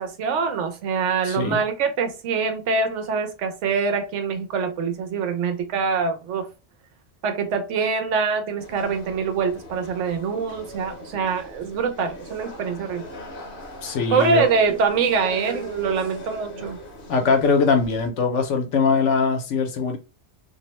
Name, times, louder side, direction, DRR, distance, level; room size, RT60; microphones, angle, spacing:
voice 1, 0.0-6.5 7.2-13.1 14.1-16.8, right 5 dB, 90° right, 0.9 m, -24 dB
voice 2, 1.2-1.6 13.8-14.5 17.1-20.0, left 4 dB, 80° left, 1.0 m, -21 dB
sound 1, 8.6-18.1, equal, 55° left, 0.8 m, -40 dB
2.6 x 2.0 x 2.9 m
omnidirectional pair, 1.2 m